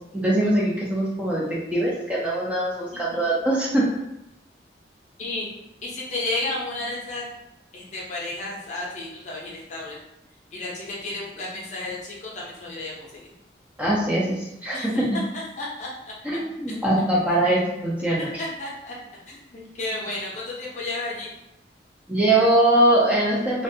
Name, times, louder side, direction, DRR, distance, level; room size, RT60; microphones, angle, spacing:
voice 1, 0.1-3.8 13.8-15.2 16.3-18.3 22.1-23.6, right 1 dB, 10° right, -6 dB, 0.4 m, -22 dB
voice 2, 5.8-7.3 7.7-10.0 10.5-13.3 14.7-16.4 16.7-16.9 18.2-19.0 19.3-21.3, left 2 dB, 40° left, -4 dB, 0.6 m, -33 dB
2.5 x 2.2 x 2.6 m, 0.86 s
head